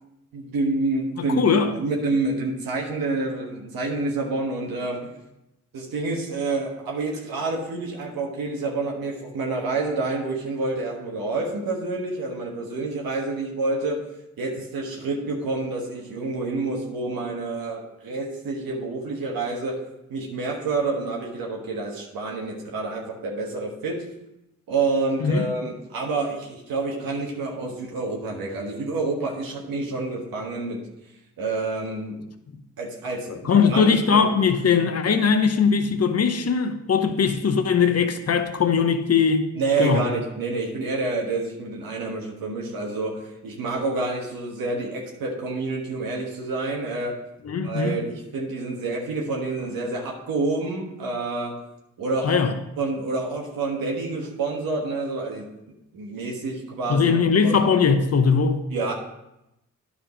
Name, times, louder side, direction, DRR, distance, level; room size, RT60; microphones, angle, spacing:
voice 1, 0.3-1.4 1.7-5.1 5.7-14.0 14.4-19.8 20.1-24.0 24.7-30.8 31.4-32.2 32.8-34.3 39.6-47.2 47.6-51.6 52.0-52.4 52.8-57.1 57.4-57.6 58.7-58.9, right 3 dB, 85° right, -1 dB, 1.4 m, -28 dB
voice 2, 1.2-1.7 25.2-25.4 33.3-39.5 39.8-40.1 47.4-48.0 52.2-52.5 56.9-58.6, left 6 dB, 45° left, 8 dB, 0.9 m, -20 dB
9.9 x 5.1 x 5.0 m, 0.89 s
supercardioid pair, 40°, 34 cm